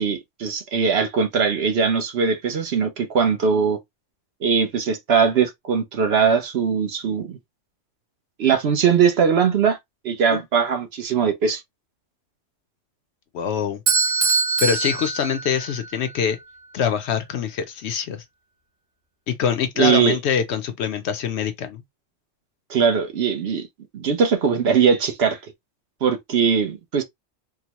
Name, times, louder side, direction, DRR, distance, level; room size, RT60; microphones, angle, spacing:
voice 1, 0.0-3.8 4.4-7.4 8.4-9.8 10.0-11.6 19.8-20.2 22.7-23.7 23.9-25.4 26.0-27.0, right 6 dB, 60° right, 0.8 m, -20 dB
voice 2, 13.3-13.8 14.6-16.4 16.7-18.2 19.3-21.8, left 7 dB, 65° left, 0.8 m, -24 dB
Bell / Doorbell, 13.9-15.9, right 4 dB, 30° right, 0.9 m, -22 dB
3.7 x 2.1 x 2.8 m
omnidirectional pair, 1.3 m